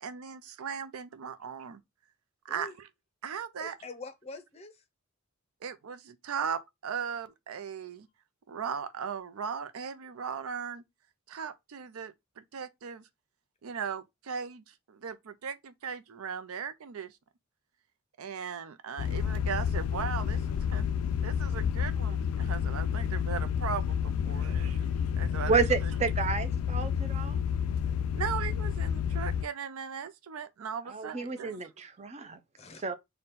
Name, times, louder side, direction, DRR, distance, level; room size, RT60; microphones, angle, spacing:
voice 1, 0.0-1.8 2.5-2.7 3.2-3.8 5.6-8.1 8.5-10.8 11.3-13.0 13.6-17.1 18.2-20.8 21.2-24.8 25.2-25.9 28.1-31.6, right 7 dB, 85° right, 0.5 m, -38 dB
voice 2, 3.6-4.8 24.2-24.7 32.6-32.8, left 2 dB, 30° left, 0.5 m, -45 dB
sound 1, 19.0-29.4, left 8 dB, 90° left, 0.3 m, -30 dB
voice 3, 25.5-27.4 30.9-32.4 32.8-32.9, right 5 dB, 30° right, 0.4 m, -30 dB
4.1 x 2.2 x 3.6 m
head